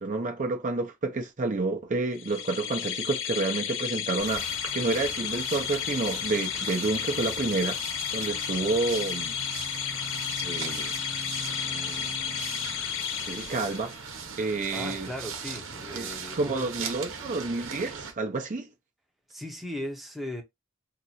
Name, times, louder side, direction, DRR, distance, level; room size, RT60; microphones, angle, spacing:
voice 1, 0.0-7.8 8.1-9.4 10.4-10.9 11.4-12.1 13.3-13.9 14.4-15.1 15.9-16.1 16.4-18.7, right 3 dB, 40° right, 0.6 m, -29 dB
sound 1, 2.2-14.0, left 9 dB, 65° left, 0.6 m, -33 dB
sound 2, 4.2-18.1, right 5 dB, 65° right, 0.9 m, -39 dB
voice 2, 14.7-16.7 19.3-20.4, left 1 dB, ahead, 0.7 m, -37 dB
2.8 x 2.5 x 4.1 m
head